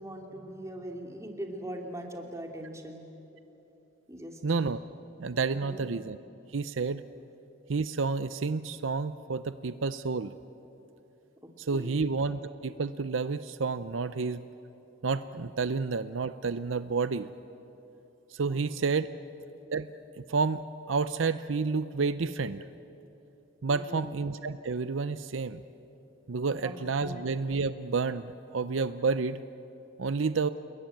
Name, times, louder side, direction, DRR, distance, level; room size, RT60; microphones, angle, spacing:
voice 1, 0.0-3.0 4.1-4.4 5.5-5.9 11.4-12.1 18.5-18.6 19.2-19.3 23.7-24.2 26.5-27.2, right 1 dB, 15° right, 2 dB, 2.6 m, -41 dB
voice 2, 4.4-4.8 5.2-6.2 6.5-7.0 7.7-10.4 11.6-14.5 15.0-17.3 18.3-19.1 19.7-19.9 20.2-20.6 20.9-22.6 23.6-25.6 26.3-29.4 30.0-30.5, right 4 dB, 80° right, 13 dB, 0.6 m, -30 dB
29.5 x 21.0 x 9.1 m, 2.9 s
head